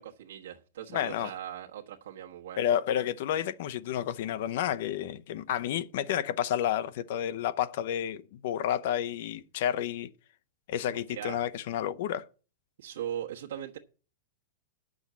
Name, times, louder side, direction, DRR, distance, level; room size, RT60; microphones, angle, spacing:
voice 1, 0.0-2.7 11.1-11.4 12.8-13.8, right 10 dB, 80° right, 1.2 m, -39 dB
voice 2, 0.9-1.3 2.6-10.1 10.7-12.3, left 10 dB, 55° left, 0.7 m, -30 dB
9.2 x 6.3 x 7.4 m
supercardioid pair, 165°, 0 cm